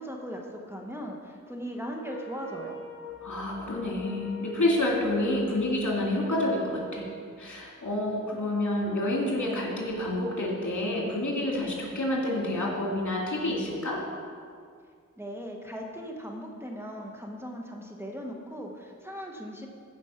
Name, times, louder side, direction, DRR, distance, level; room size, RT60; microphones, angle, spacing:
voice 1, 0.0-2.8 15.2-19.7, equal, 10° right, 0 dB, 1.3 m, -38 dB
Wind instrument woodwind instrument, 2.0-7.3, right 2 dB, 45° left, 1.3 m, -43 dB
voice 2, 3.2-7.1 7.4-14.0, left 1 dB, 70° left, -3 dB, 2.8 m, -28 dB
14.0 x 5.3 x 5.8 m, 2.1 s
wide cardioid pair, 45°, 31 cm